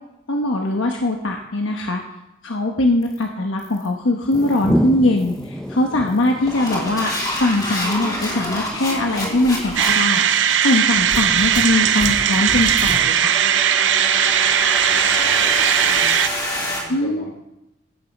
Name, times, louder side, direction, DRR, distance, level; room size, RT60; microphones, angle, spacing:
voice 1, 0.3-2.0 2.4-13.4 16.9-17.2, left 2 dB, 75° left, 2 dB, 1.1 m, -21 dB
sound 1, 3.0-3.2 3.6-3.9 4.3-4.7 5.2-5.4 6.1-16.8, left 1 dB, 20° left, 3.0 m, -28 dB
sound 2, 4.3-12.7, equal, 5° left, 0.6 m, -31 dB
sound 3, 9.8-16.3, right 9 dB, 65° right, 0.6 m, -18 dB
voice 2, 11.8-12.2 14.8-16.2 16.5-17.4, left 1 dB, 45° left, 1 dB, 3.0 m, -38 dB
15.0 x 7.0 x 5.4 m, 0.89 s
head